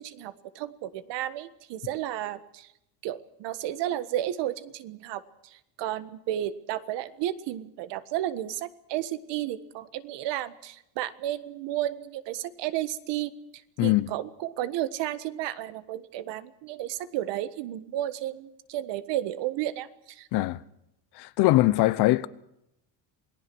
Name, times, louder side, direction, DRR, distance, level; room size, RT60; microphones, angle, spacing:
voice 1, 0.0-2.7 3.0-13.3 13.8-20.3, right 13 dB, 65° right, 1.6 m, -33 dB
voice 2, 13.8-14.1 20.3-20.6 21.2-22.3, left 17 dB, 55° left, 1.0 m, -22 dB
27.5 x 19.0 x 6.2 m
cardioid pair, 155°, 46 cm